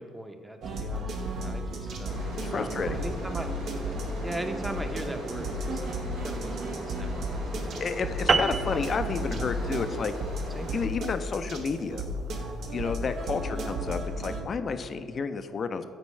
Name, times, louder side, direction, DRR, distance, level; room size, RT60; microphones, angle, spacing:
voice 1, 0.0-3.5 4.2-5.8 6.1-7.7 8.3-8.4 8.7-8.8 10.5-10.7, right 1 dB, 10° right, 6 dB, 0.7 m, -39 dB
sound 1, 0.6-14.4, equal, 65° right, 0.8 m, -34 dB
sound 2, 2.0-10.8, right 1 dB, 80° right, 1.4 m, -40 dB
voice 2, 2.4-3.0 7.8-10.1 10.7-12.0 12.7-15.8, left 5 dB, 45° left, 10 dB, 0.4 m, -31 dB
sound 3, 8.3-13.0, right 4 dB, 40° right, 0.3 m, -31 dB
8.4 x 4.4 x 3.2 m, 2.1 s
hypercardioid pair, 55°, 0 cm